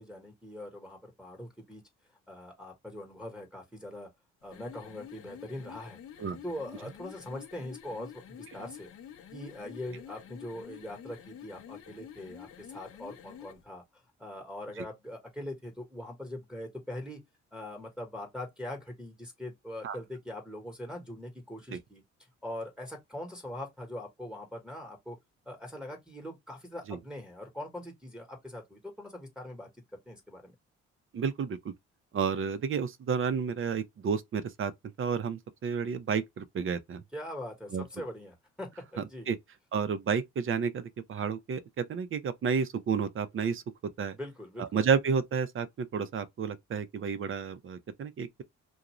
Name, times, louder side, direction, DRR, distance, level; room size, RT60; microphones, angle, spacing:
voice 1, 0.0-1.8 2.3-4.1 4.4-6.0 6.4-8.9 9.3-13.8 14.2-17.2 17.5-22.0 22.4-25.2 25.5-29.7 30.1-30.5 37.1-39.3 44.1-44.8, left 1 dB, 5° right, 1.2 m, -42 dB
sound 1, 4.4-13.6, left 9 dB, 50° left, 0.6 m, -49 dB
voice 2, 31.1-31.7 32.1-34.7 35.0-37.0 37.7-37.8 39.0-39.4 39.7-43.6 44.0-44.2 44.6-48.3, right 6 dB, 45° right, 0.6 m, -31 dB
2.6 x 2.2 x 3.0 m
cardioid pair, 90°, 30 cm